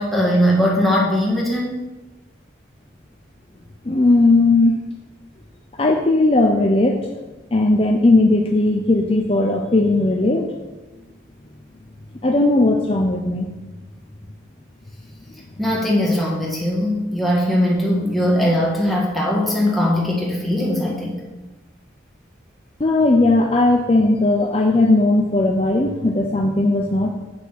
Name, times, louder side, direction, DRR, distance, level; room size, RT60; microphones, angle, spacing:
voice 1, 0.0-1.8 15.6-21.2, equal, ahead, -4 dB, 1.7 m, -20 dB
voice 2, 3.8-4.9 5.8-7.1 7.5-10.5 12.2-13.5 22.8-27.1, left 2 dB, 30° left, 2 dB, 0.6 m, -17 dB
8.0 x 5.8 x 5.9 m, 1.1 s
head